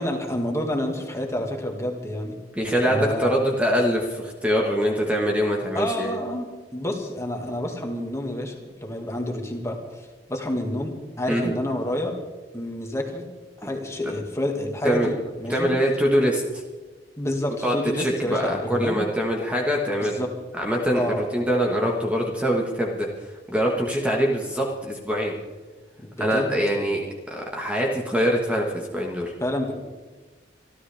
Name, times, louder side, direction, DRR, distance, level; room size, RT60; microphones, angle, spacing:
voice 1, 0.0-2.4 2.9-3.3 5.7-9.8 10.3-12.2 12.5-13.2 13.6-15.7 17.2-19.0 20.0-20.3 21.0-21.3 26.0-26.9 29.4-29.7, left 1 dB, 15° left, 2 dB, 2.1 m, -28 dB
voice 2, 2.5-6.1 11.3-11.6 13.6-13.7 14.0-14.1 14.8-15.1 15.5-16.6 17.6-20.2 20.5-23.1 23.5-25.4 26.2-27.0 27.3-29.3, equal, 5° right, -1 dB, 1.5 m, -24 dB
26.5 x 13.0 x 3.5 m, 1.3 s
head